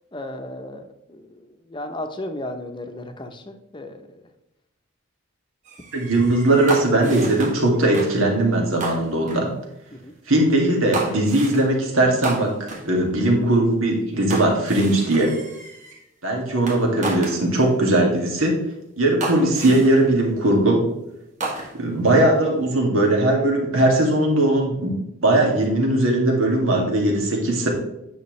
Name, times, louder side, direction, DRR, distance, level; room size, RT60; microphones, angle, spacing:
voice 1, 0.1-4.3 9.9-10.1, left 1 dB, 25° left, 6 dB, 0.8 m, -35 dB
sound 1, 5.6-7.6 7.9-8.2 8.8-9.5 10.9-11.7 12.2-12.9 14.3-16.0 16.7-17.8 18.5-18.6 19.2-20.0 21.4-21.9, right 3 dB, 35° right, 1.5 m, -32 dB
voice 2, 5.9-9.5 10.3-15.3 16.2-18.5 19.0-20.8 21.7-24.9 25.2-27.7, right 1 dB, 90° right, 0 dB, 2.2 m, -19 dB
9.6 x 5.7 x 3.2 m, 0.85 s
head